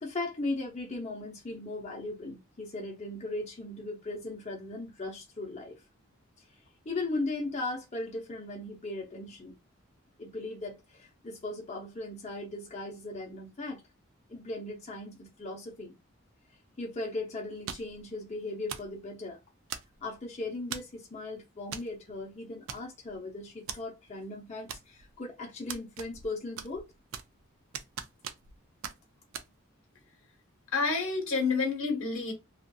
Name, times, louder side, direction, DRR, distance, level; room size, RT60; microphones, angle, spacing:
voice 1, 0.0-5.7 6.8-9.5 10.2-13.8 14.3-15.9 16.8-19.4 20.0-26.9, left 2 dB, 35° left, 0.7 m, -38 dB
sound 1, 17.7-18.0 18.7-19.0 19.7-20.1 20.7-21.0 21.7-21.9 22.2-22.3 22.7-23.2 23.7-23.8 24.7-25.2 25.7-26.3 26.6-27.4 27.7-28.6 28.8-29.0 29.3-29.5, right 8 dB, 75° right, 0.4 m, -40 dB
voice 2, 30.7-32.3, left 4 dB, 85° left, 1.1 m, -28 dB
2.6 x 2.4 x 2.2 m
head